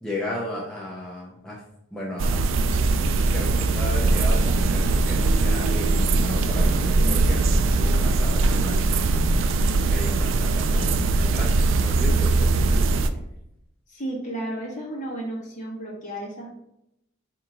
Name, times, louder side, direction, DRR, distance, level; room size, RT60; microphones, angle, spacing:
voice 1, 0.0-1.6 1.9-2.4 3.3-9.3 9.6-12.6, left 1 dB, 5° left, -6 dB, 0.5 m, -34 dB
sound 1, 2.2-13.1, right 3 dB, 65° right, 0.3 m, -21 dB
voice 2, 13.9-16.5, right 1 dB, 35° left, -3 dB, 1.2 m, -33 dB
4.6 x 2.9 x 3.7 m, 0.82 s
head